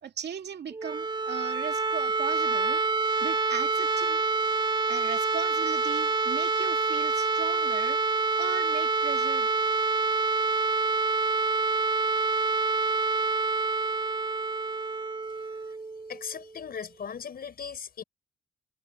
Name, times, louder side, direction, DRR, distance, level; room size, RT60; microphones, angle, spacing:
voice 1, 0.0-2.8 3.2-4.2 4.9-8.0 8.4-9.5, right 8 dB, 60° right, 2.5 m, -38 dB
sound 1, 0.7-16.5, right 4 dB, 25° right, 1.8 m, -27 dB
voice 2, 16.1-18.0, left 7 dB, 50° left, 5.3 m, -38 dB
cardioid pair, 90°, 20 cm